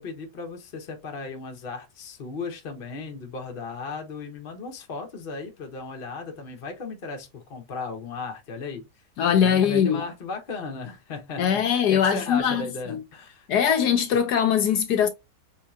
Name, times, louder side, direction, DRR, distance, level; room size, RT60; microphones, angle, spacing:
voice 1, 0.0-8.9 9.4-13.5, left 4 dB, 40° left, 1.0 m, -36 dB
voice 2, 9.2-10.0 11.4-13.0 13.5-15.1, left 8 dB, 75° left, 1.2 m, -21 dB
4.8 x 2.9 x 2.3 m
omnidirectional pair, 1.9 m